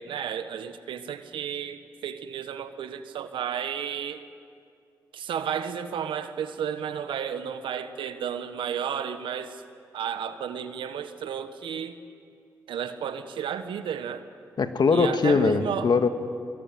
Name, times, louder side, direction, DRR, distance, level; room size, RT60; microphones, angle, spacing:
voice 1, 0.0-4.2 5.1-9.6 9.9-12.0 12.7-14.2 14.9-15.9, right 8 dB, 80° right, 10 dB, 1.3 m, -32 dB
voice 2, 14.6-16.1, left 4 dB, 60° left, 8 dB, 1.8 m, -21 dB
23.0 x 22.0 x 9.5 m, 2.4 s
supercardioid pair, 45°, 8 cm